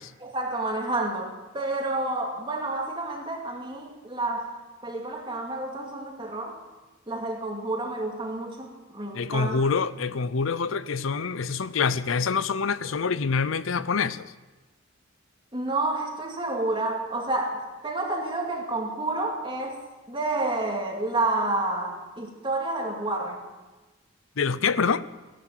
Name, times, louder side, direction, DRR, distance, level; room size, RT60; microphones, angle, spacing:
voice 1, 0.2-6.5 7.1-9.6 15.5-19.8 20.1-23.4, right 2 dB, 25° right, 2.4 m, -29 dB
voice 2, 9.1-14.3 24.4-25.0, left 5 dB, 80° left, 0.6 m, -26 dB
16.5 x 11.5 x 7.5 m
head